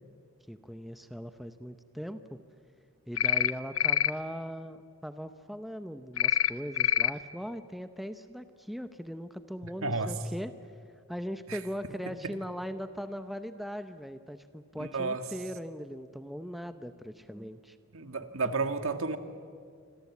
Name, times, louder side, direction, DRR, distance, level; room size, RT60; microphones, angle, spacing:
voice 1, 0.5-2.4 3.1-10.5 11.1-17.8, equal, ahead, 9 dB, 0.7 m, -39 dB
sound 1, 3.2-3.5 3.8-4.1 6.2-6.5 6.8-7.1, left 10 dB, 65° left, 0.8 m, -25 dB
voice 2, 9.6-10.1 11.5-11.6 12.0-12.3 14.8-15.2 17.9-19.2, right 3 dB, 65° right, 8 dB, 1.7 m, -32 dB
26.5 x 26.0 x 8.4 m, 2.1 s
head